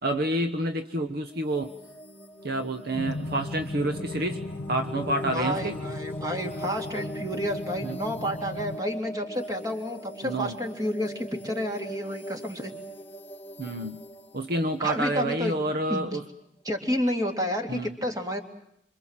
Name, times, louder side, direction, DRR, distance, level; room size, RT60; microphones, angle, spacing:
voice 1, 0.0-1.7 2.4-4.4 4.7-5.8 7.8-8.0 10.2-10.6 13.6-14.0 14.3-16.2 17.7-17.9, right 1 dB, 55° right, 7 dB, 1.2 m, -28 dB
sound 1, 1.3-16.0, equal, 10° left, 1.9 m, -41 dB
sound 2, 2.9-8.8, left 2 dB, 85° left, 0.9 m, -37 dB
voice 2, 5.2-12.7 14.8-16.1 16.6-18.4, equal, 20° right, 4 dB, 2.9 m, -30 dB
26.5 x 26.0 x 7.4 m, 0.75 s
head